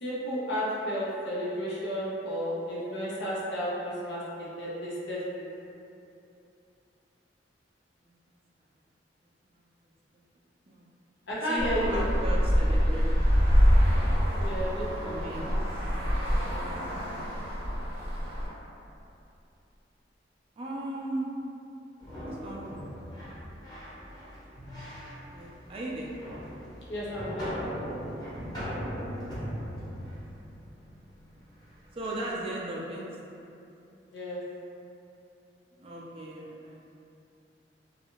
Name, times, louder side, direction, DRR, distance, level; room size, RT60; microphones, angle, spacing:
voice 1, 0.0-4.2 4.6-5.4 11.3-12.1 14.4-15.2 16.4-16.7 26.9-27.5 34.1-34.4, equal, 70° left, -7 dB, 0.7 m, -32 dB
voice 2, 11.4-13.3 15.0-15.5 20.6-21.3 22.2-22.8 25.3-26.1 31.9-33.0 35.8-36.8, right 1 dB, 30° right, -5 dB, 0.3 m, -36 dB
Traffic noise roadway noise, 11.6-18.5, equal, 55° right, 0.8 m, -25 dB
sound 1, 22.0-32.3, equal, 25° left, 0.8 m, -39 dB
2.6 x 2.4 x 2.8 m, 2.7 s
head